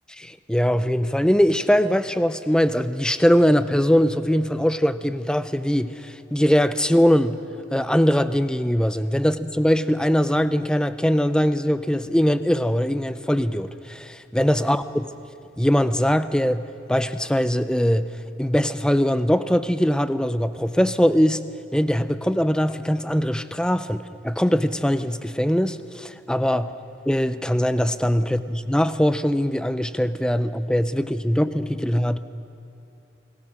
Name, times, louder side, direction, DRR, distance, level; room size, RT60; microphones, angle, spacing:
voice 1, 0.2-7.4 7.7-15.0 15.6-16.6 16.9-18.1 18.4-21.4 21.7-26.7 27.1-32.2, equal, 5° left, 12 dB, 0.6 m, -21 dB
29.5 x 19.0 x 6.4 m, 2.9 s
head